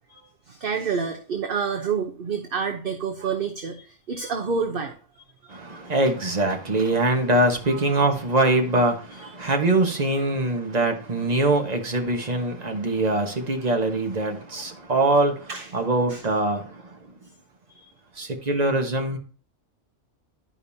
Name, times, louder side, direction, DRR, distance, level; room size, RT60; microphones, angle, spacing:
voice 1, 0.1-5.9 7.7-8.1 9.2-9.5 14.8-14.9 15.5-15.7 16.1-16.2 17.7-17.9, right 5 dB, 50° right, 1.0 m, -30 dB
voice 2, 5.5-17.1 18.1-19.2, right 2 dB, 35° right, 1.4 m, -23 dB
12.0 x 5.2 x 2.7 m
omnidirectional pair, 1.3 m